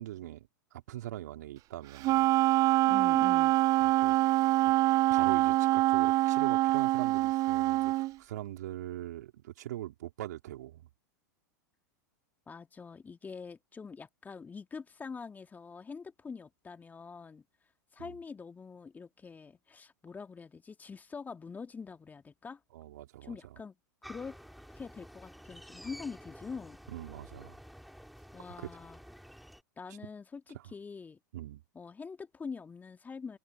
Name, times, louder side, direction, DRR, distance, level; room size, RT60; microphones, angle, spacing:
voice 1, 0.0-2.3 4.0-4.2 4.6-4.7 5.1-10.9 18.0-18.2 22.7-23.4 26.9-27.6 28.6-28.7 29.9-30.0 30.5-30.7 31.3-31.6, right 14 dB, 65° right, 3.7 m, -42 dB
Wind instrument woodwind instrument, 2.0-8.1, right 18 dB, 35° right, 0.4 m, -25 dB
voice 2, 2.9-3.5 12.5-17.4 17.9-22.6 23.2-23.7 24.1-24.4 24.8-26.8 28.3-29.0 29.8-31.2 31.8-33.4, left 5 dB, 15° left, 2.0 m, -44 dB
sound 1, 24.0-29.6, equal, ahead, 5.7 m, -51 dB
figure-of-eight pair, 90°, 10 cm